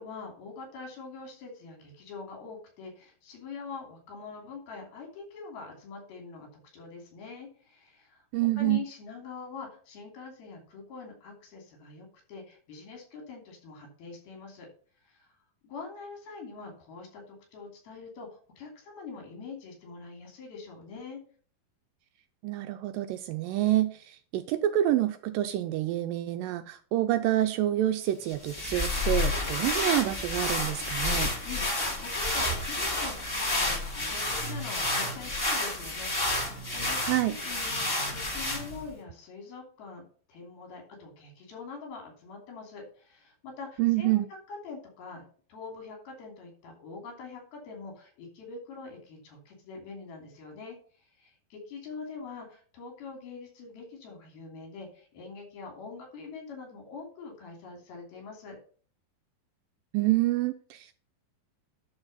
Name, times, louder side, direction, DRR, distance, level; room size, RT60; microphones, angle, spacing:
voice 1, 0.0-6.5 6.7-8.2 8.5-14.7 15.0-15.3 15.6-21.2 31.5-44.2 44.5-45.2 45.5-58.6, left 4 dB, 80° left, 1 dB, 4.9 m, -44 dB
voice 2, 8.3-8.8 22.4-31.3 37.0-37.3 43.8-44.3 59.9-60.9, right 14 dB, 80° right, 8 dB, 2.1 m, -27 dB
sound 1, 28.3-38.9, left 2 dB, 20° left, 2.0 m, -30 dB
10.5 x 4.3 x 5.5 m, 0.43 s
omnidirectional pair, 4.3 m